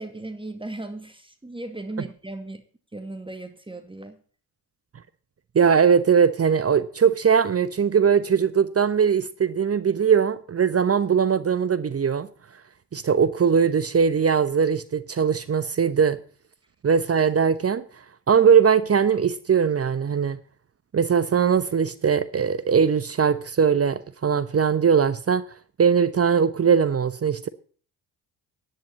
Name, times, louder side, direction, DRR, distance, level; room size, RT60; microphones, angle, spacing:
voice 1, 0.0-2.6 2.9-4.2, right 2 dB, 10° right, 2.2 m, -36 dB
voice 2, 5.5-12.3 12.9-16.2 16.8-17.8 18.3-20.4 20.9-25.4 25.8-27.5, right 6 dB, 30° right, 1.0 m, -20 dB
16.0 x 10.5 x 4.2 m
hypercardioid pair, 50°, 47 cm